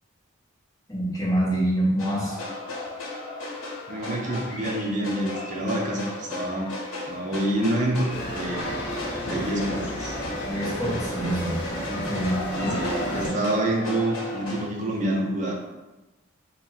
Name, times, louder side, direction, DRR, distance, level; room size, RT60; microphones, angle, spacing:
voice 1, 0.9-2.4 9.2-9.4 10.5-11.6 11.9-13.3, right 1 dB, 15° left, -7 dB, 0.9 m, -27 dB
sound 1, 2.0-14.7, left 2 dB, 85° left, 0.8 m, -35 dB
voice 2, 3.9-6.7 7.1-8.7 9.2-10.2 12.6-15.5, right 1 dB, 35° right, -1 dB, 0.6 m, -27 dB
sound 2, 8.1-13.3, equal, 55° left, 0.7 m, -32 dB
2.8 x 2.6 x 3.9 m, 1.1 s
head